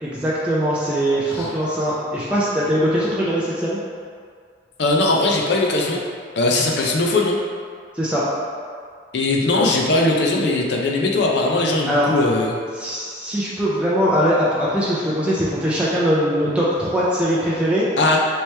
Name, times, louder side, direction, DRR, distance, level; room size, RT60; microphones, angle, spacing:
voice 1, 0.0-3.8 7.9-8.3 11.8-12.1 12.8-17.9, equal, 5° right, -8 dB, 0.4 m, -21 dB
voice 2, 4.8-6.0 6.4-7.4 9.1-12.6 18.0-18.2, left 2 dB, 65° left, 0 dB, 0.5 m, -19 dB
3.1 x 3.0 x 3.2 m, 2.1 s
head